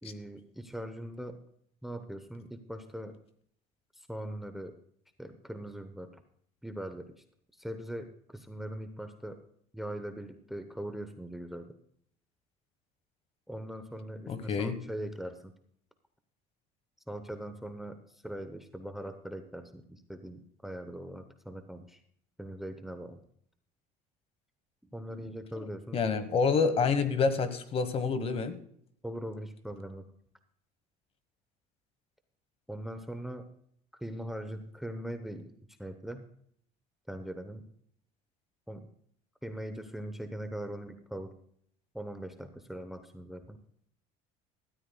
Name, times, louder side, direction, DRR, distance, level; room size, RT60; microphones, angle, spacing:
voice 1, 0.0-1.4 1.8-3.2 4.0-4.7 5.2-6.2 6.6-7.1 7.6-9.4 9.7-11.7 13.5-15.5 17.1-22.0 22.4-23.2 24.9-26.0 29.0-30.1 32.7-33.5 34.0-35.5 35.8-36.3 37.1-37.7 38.7-38.9 39.4-41.3 41.9-43.6, right 1 dB, ahead, 8 dB, 0.8 m, -41 dB
voice 2, 14.3-14.8 25.9-28.6, left 5 dB, 40° left, 11 dB, 1.3 m, -27 dB
17.5 x 13.0 x 2.3 m, 0.65 s
cardioid pair, 130°, 16 cm